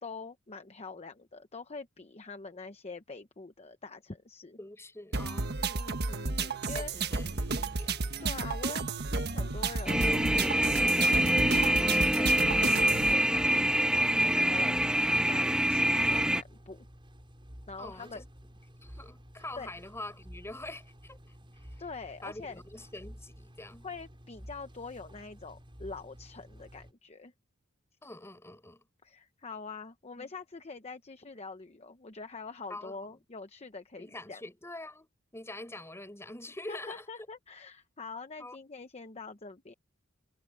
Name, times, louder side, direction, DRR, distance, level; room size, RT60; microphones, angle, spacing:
voice 1, 0.0-4.6 5.6-6.9 8.2-10.5 11.0-16.8 17.7-18.2 19.5-19.7 21.8-22.6 23.8-27.3 29.0-34.4 36.7-39.7, left 4 dB, 30° left, 0.9 m, -44 dB
voice 2, 4.6-5.7 6.7-7.9 17.8-18.3 18.8-21.2 21.6-21.7 22.2-23.9 28.0-28.8 30.2-30.3 32.7-33.1 34.0-37.0 38.4-38.6, left 2 dB, 15° left, 6.1 m, -45 dB
sound 1, 5.1-13.1, right 4 dB, 55° right, 1.4 m, -32 dB
sound 2, 7.4-26.9, equal, 25° right, 6.6 m, -51 dB
sound 3, 9.9-16.4, right 1 dB, 5° right, 0.5 m, -25 dB
head